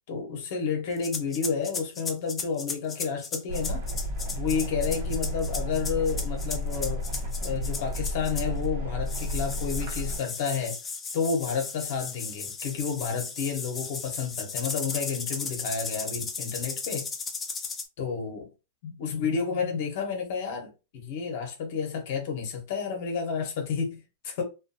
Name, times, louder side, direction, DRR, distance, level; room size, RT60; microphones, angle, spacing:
voice 1, 0.1-3.9 4.4-7.0 7.4-10.8 11.1-17.1 18.0-18.5 18.8-24.4, left 6 dB, 50° left, 0.8 m, -30 dB
sound 1, 1.0-8.6 9.1-17.9, left 4 dB, 15° left, 0.4 m, -35 dB
sound 2, 3.5-10.2, equal, 70° right, 0.9 m, -32 dB
2.5 x 2.2 x 2.6 m
supercardioid pair, 165°, 0 cm